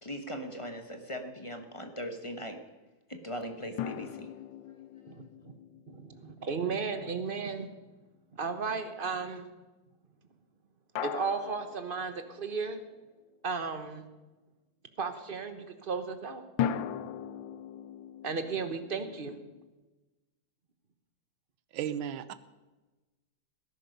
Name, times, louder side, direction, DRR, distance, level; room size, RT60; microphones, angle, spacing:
voice 1, 0.0-2.6 3.1-4.3, equal, 20° left, 6 dB, 0.9 m, -39 dB
sound 1, 3.8-7.1 11.0-12.9 16.6-19.7, left 9 dB, 75° left, 1.4 m, -39 dB
voice 2, 5.9-7.7 8.3-9.4 11.0-12.8 13.4-14.0 15.0-16.4 18.2-19.4, right 5 dB, 35° right, 8 dB, 1.0 m, -34 dB
voice 3, 21.7-22.3, right 9 dB, 80° right, 13 dB, 1.5 m, -34 dB
18.5 x 11.0 x 5.3 m, 1.2 s
omnidirectional pair, 2.2 m